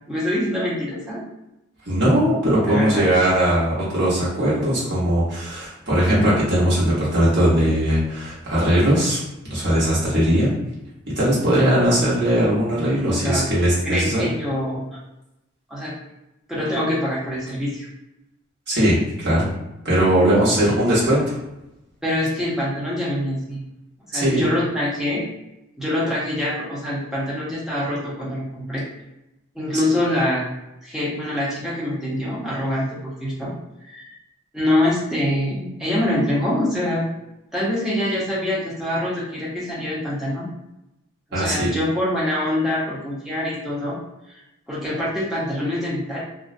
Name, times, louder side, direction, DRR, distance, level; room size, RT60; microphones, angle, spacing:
voice 1, 0.1-1.2 2.7-3.1 13.1-13.4 13.8-14.8 15.7-15.9 16.5-17.9 22.0-23.6 24.1-25.2 25.8-28.8 29.5-30.5 30.8-33.5 33.9-34.1 34.5-37.1 37.5-40.5 41.3-44.0 44.3-44.4 44.7-46.2, left 1 dB, ahead, -7 dB, 0.6 m, -24 dB
voice 2, 1.9-9.2 9.5-10.5 11.1-14.2 18.7-19.5 19.8-21.4 24.1-24.5 41.3-41.7, equal, 55° right, -9 dB, 1.1 m, -19 dB
2.4 x 2.1 x 2.5 m, 0.91 s
head